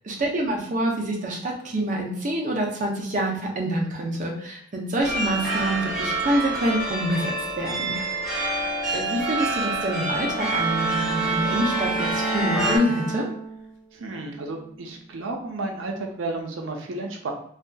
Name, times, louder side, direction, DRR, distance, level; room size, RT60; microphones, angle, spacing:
voice 1, 0.0-8.0 8.9-13.3, right 1 dB, 45° right, 0 dB, 0.6 m, -26 dB
sound 1, 5.0-12.8, right 2 dB, 5° right, 0.7 m, -27 dB
Bowed string instrument, 10.2-13.7 14.2-14.6, right 3 dB, 75° left, 0.6 m, -31 dB
voice 2, 13.9-17.3, right 2 dB, 85° right, 2 dB, 0.5 m, -32 dB
2.7 x 2.4 x 2.2 m, 0.69 s
head